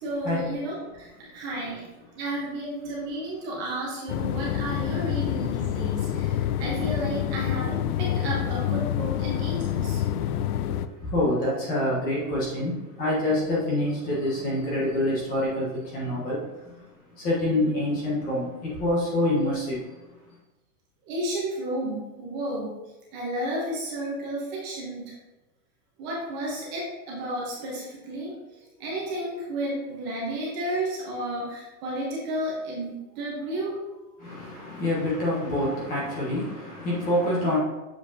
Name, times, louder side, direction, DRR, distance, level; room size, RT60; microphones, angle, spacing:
voice 1, 0.0-1.9 2.2-10.0 21.0-22.7 23.1-25.1 26.0-28.3 28.8-33.8 34.6-34.8, right 1 dB, 25° right, 1.0 m, -32 dB
sound 1, 4.1-10.9, left 11 dB, 75° left, 0.5 m, -27 dB
voice 2, 11.0-16.7 17.1-19.8 34.2-37.6, left 1 dB, 20° left, 1.2 m, -26 dB
7.2 x 5.0 x 2.8 m
supercardioid pair, 175°, 46 cm